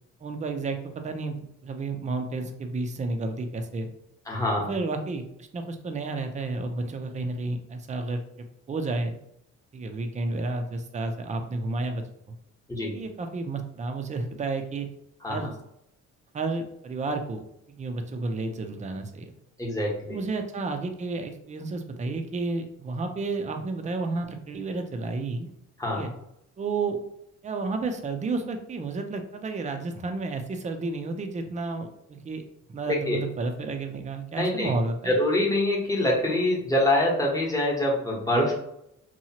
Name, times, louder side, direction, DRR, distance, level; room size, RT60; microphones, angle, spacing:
voice 1, 0.2-3.9 4.7-9.2 9.7-12.4 12.9-14.9 15.3-15.5 16.3-17.4 17.7-19.3 20.1-25.5 25.9-26.1 26.6-27.0 27.4-32.4 32.7-35.1, right 3 dB, 25° right, 5 dB, 0.4 m, -31 dB
voice 2, 4.3-4.7 12.7-13.0 15.2-15.4 19.6-20.2 25.8-26.0 33.1-33.2 34.3-34.7 35.0-38.5, left 1 dB, 10° left, -3 dB, 1.0 m, -25 dB
2.8 x 2.3 x 2.8 m, 0.76 s
cardioid pair, 90°, 30 cm